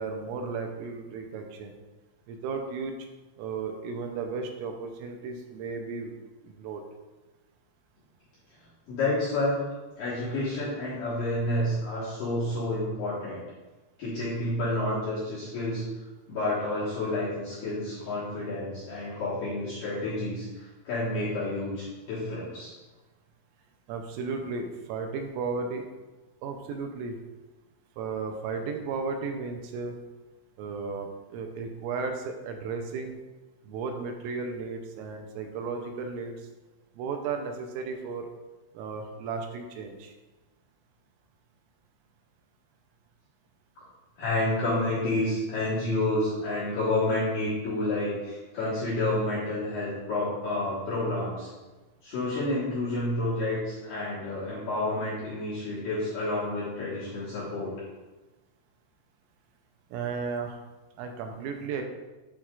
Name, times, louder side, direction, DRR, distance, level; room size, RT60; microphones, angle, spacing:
voice 1, 0.0-1.7 2.3-2.9 3.4-6.2 6.4-6.8 23.9-25.8 26.4-27.2 28.0-30.0 30.6-33.2 33.6-36.5 37.0-38.3 38.7-40.1 59.9-60.6 61.0-61.8, right 4 dB, 85° right, 5 dB, 3.1 m, -34 dB
voice 2, 8.9-9.6 10.0-13.4 14.0-15.8 16.3-22.7 44.2-51.5 52.0-57.7, left 2 dB, 65° left, -9 dB, 2.2 m, -29 dB
9.3 x 4.3 x 2.4 m, 1.2 s
omnidirectional pair, 5.8 m